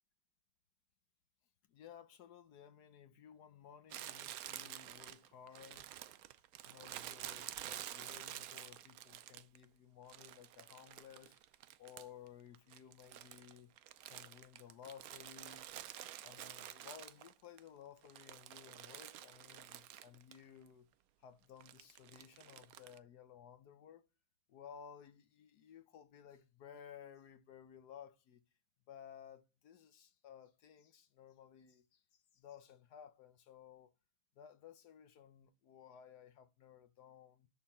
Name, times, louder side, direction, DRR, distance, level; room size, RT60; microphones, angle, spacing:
voice 1, 1.7-6.1 6.6-11.5 11.8-13.7 14.1-15.7 16.2-20.9 21.2-24.1 24.5-28.4 28.9-33.9 34.4-37.5, left 8 dB, 65° left, 1.2 m, -57 dB
Crumpling crinkling, 3.9-9.6 10.1-12.3 12.5-17.6 18.0-20.4 20.7-20.8 21.6-23.0, right 12 dB, 85° right, 0.7 m, -50 dB
11.0 x 4.4 x 5.4 m
omnidirectional pair, 2.1 m